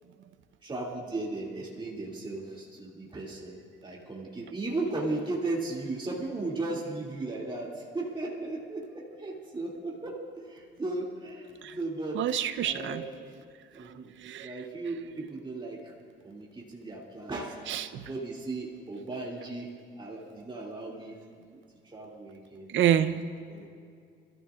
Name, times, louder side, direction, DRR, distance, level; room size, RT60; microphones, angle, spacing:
voice 1, 0.6-12.2 12.6-13.3 13.7-14.1 14.4-15.9 16.2-17.6 18.0-21.2 21.5-22.7 23.5-23.7, right 2 dB, 25° right, -3 dB, 2.6 m, -36 dB
voice 2, 12.1-13.0 14.2-14.5 17.7-18.1 22.7-23.2, right 10 dB, 75° right, 11 dB, 0.8 m, -27 dB
26.5 x 14.0 x 2.5 m, 2.2 s
cardioid pair, 90°, 20 cm